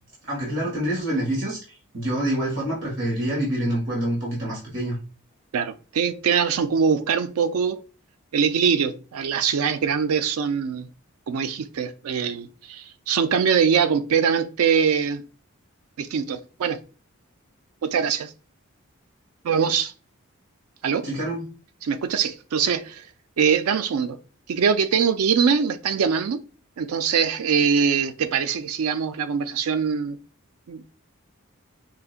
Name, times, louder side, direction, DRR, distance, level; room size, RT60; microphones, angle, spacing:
voice 1, 0.2-5.0 21.0-21.4, right 1 dB, 60° right, 1.5 m, -26 dB
voice 2, 5.5-7.8 8.3-10.9 11.3-15.2 16.0-16.8 17.8-18.3 19.4-19.9 20.8-21.1 21.8-23.0 23.4-24.2 24.5-26.4 26.8-30.2 30.7-30.8, right 6 dB, 90° right, 0.4 m, -23 dB
4.8 x 2.7 x 2.4 m
head